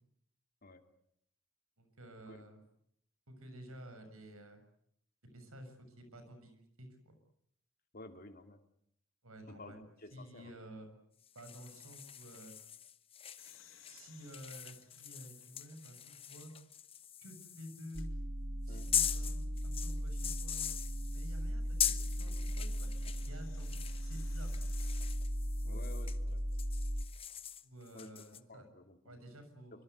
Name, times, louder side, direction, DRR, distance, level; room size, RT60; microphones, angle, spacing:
voice 1, 1.8-2.6 3.3-4.6 5.2-7.2 9.2-9.8 10.1-11.0 11.3-12.6 13.9-16.5 17.2-18.1 18.6-19.4 19.6-20.7 21.1-24.5 25.6-25.8 27.6-28.7 29.0-29.8, equal, 90° right, 8 dB, 6.8 m, -52 dB
voice 2, 7.9-8.6 9.5-10.5 18.7-18.9 25.6-26.4 27.9-28.2 28.5-29.2 29.7-29.8, left 2 dB, 45° left, 6 dB, 2.7 m, -52 dB
sound 1, 11.2-18.0 18.7-23.3 23.6-26.2 26.5-28.4, left 9 dB, 25° left, 1.0 m, -41 dB
sound 2, 13.4-16.3 16.8-16.9 17.8-18.1 20.2-25.1, left 9 dB, 65° left, 5.0 m, -63 dB
sound 3, 17.9-27.0, equal, 40° right, 1.4 m, -37 dB
26.5 x 25.0 x 8.2 m, 0.71 s
head